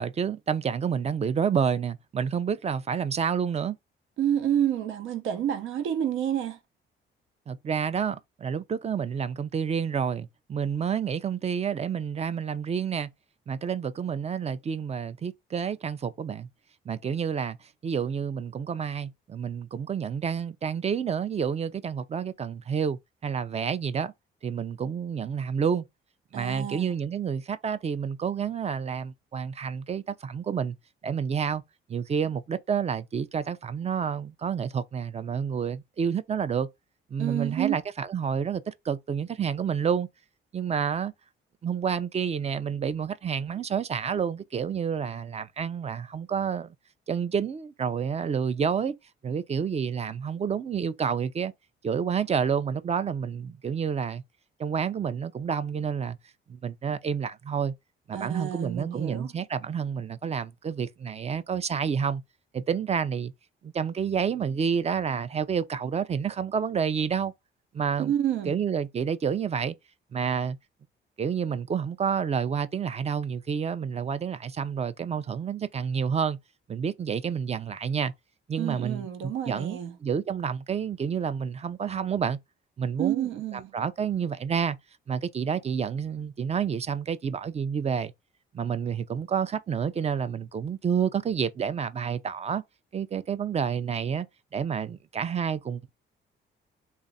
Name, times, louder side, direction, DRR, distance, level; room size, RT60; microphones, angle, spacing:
voice 1, 0.0-3.8 7.5-13.1 13.5-16.5 16.9-17.6 17.8-24.1 24.4-25.8 26.3-30.7 31.0-31.6 31.9-36.7 37.1-40.1 40.5-41.1 41.6-46.7 47.1-48.9 49.2-51.5 51.8-54.2 54.6-56.2 56.5-57.7 58.1-62.2 62.5-63.3 63.6-67.3 67.7-68.1 68.5-69.8 70.1-70.6 71.2-76.4 76.7-78.1 78.5-82.4 82.8-84.8 85.1-88.1 88.5-92.6 92.9-94.3 94.5-95.9, right 7 dB, 30° right, 0.4 m, -29 dB
voice 2, 4.2-6.6 26.3-26.9 37.2-37.8 58.1-59.3 68.0-68.6 78.6-80.0 83.0-83.7, right 10 dB, 80° right, 0.7 m, -29 dB
3.2 x 2.4 x 4.0 m
cardioid pair, 90°, 20 cm